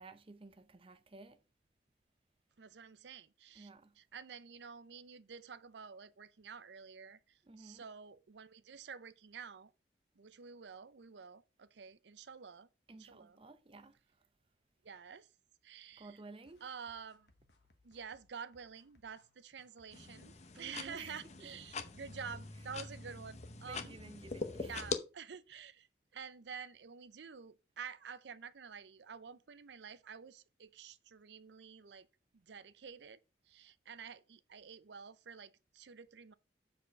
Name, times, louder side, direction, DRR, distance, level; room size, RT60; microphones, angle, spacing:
voice 1, 0.0-1.4 3.5-4.0 7.4-7.8 12.9-14.0 16.0-16.6 20.6-21.5 23.7-24.8, right 3 dB, 30° right, 0.7 m, -53 dB
voice 2, 2.6-3.7 4.0-9.7 10.2-13.4 14.8-15.3 15.6-16.2 16.6-17.3 17.8-24.0 24.7-25.9 26.1-32.1 32.3-36.3, right 6 dB, 75° right, 0.6 m, -50 dB
sound 1, 16.4-23.1, left 2 dB, 65° left, 1.3 m, -72 dB
sound 2, 19.9-25.0, left 4 dB, 40° left, 0.8 m, -43 dB
7.5 x 4.3 x 5.3 m
head